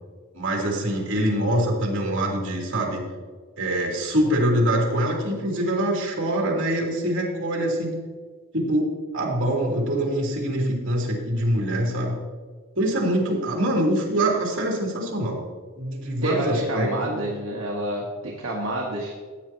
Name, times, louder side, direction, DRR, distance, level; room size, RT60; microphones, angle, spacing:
voice 1, 0.3-3.0 3.6-8.0 8.5-8.9 9.1-12.2 12.7-15.4 15.8-17.3, right 1 dB, 60° right, -2 dB, 3.2 m, -24 dB
voice 2, 16.2-19.2, right 1 dB, 75° right, -4 dB, 1.6 m, -28 dB
15.5 x 9.4 x 3.0 m, 1.5 s
head